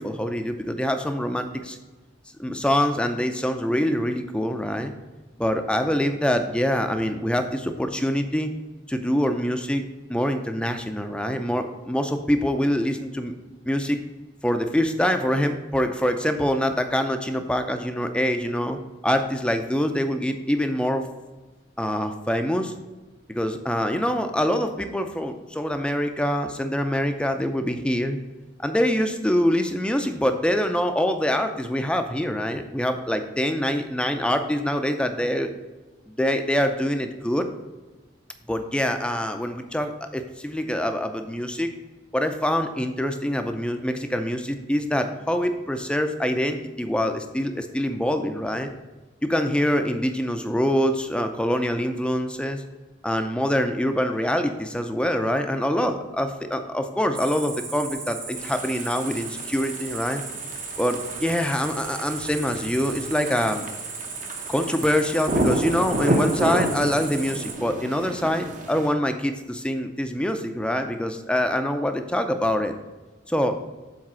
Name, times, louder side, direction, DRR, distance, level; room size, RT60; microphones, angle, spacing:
voice 1, 0.0-1.8 2.4-4.9 5.4-8.5 8.9-9.8 10.1-13.3 13.6-14.0 14.4-18.8 19.0-21.1 21.8-22.7 23.3-28.2 28.6-35.5 36.1-37.5 38.5-41.7 42.1-48.7 49.2-52.6 53.0-60.2 60.8-63.7 64.5-72.7 73.3-73.6, equal, 5° left, 7 dB, 0.5 m, -25 dB
Cricket, 57.1-67.5, right 4 dB, 80° right, 1.8 m, -36 dB
sound 1, 58.4-68.9, right 1 dB, 40° right, 0.9 m, -30 dB
7.4 x 4.1 x 6.1 m, 1.2 s
head